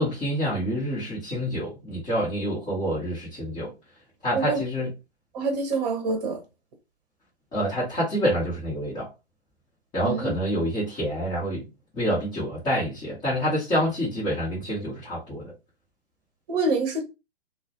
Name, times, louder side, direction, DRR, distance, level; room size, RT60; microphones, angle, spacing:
voice 1, 0.0-3.7 4.2-4.9 7.5-9.1 9.9-11.6 11.9-15.5, equal, 15° left, 0.7 m, -27 dB
voice 2, 5.3-6.4 10.0-10.3 16.5-17.0, right 3 dB, 40° right, 0.8 m, -26 dB
2.3 x 2.0 x 2.8 m
figure-of-eight pair, 120°, 32 cm